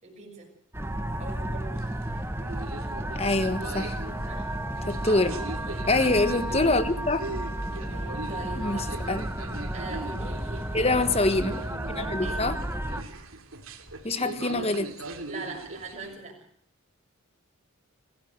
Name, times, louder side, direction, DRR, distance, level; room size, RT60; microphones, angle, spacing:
voice 1, 0.0-0.5 1.2-1.9 4.3-4.5 5.6-5.9 7.8-9.2 9.7-11.0 11.5-11.6 12.2-12.4 15.3-16.4, right 3 dB, 30° right, 0 dB, 6.2 m, -42 dB
sound 1, 0.7-13.0, right 1 dB, 10° right, 1.3 m, -33 dB
sound 2, 1.7-16.2, right 2 dB, 70° right, 2.9 m, -40 dB
voice 2, 3.1-4.0 4.9-5.4 5.9-7.3 8.6-9.3 10.7-11.5 11.9-12.6 14.0-15.0, left 2 dB, 30° left, 11 dB, 1.4 m, -25 dB
25.0 x 15.0 x 8.1 m, 0.62 s
head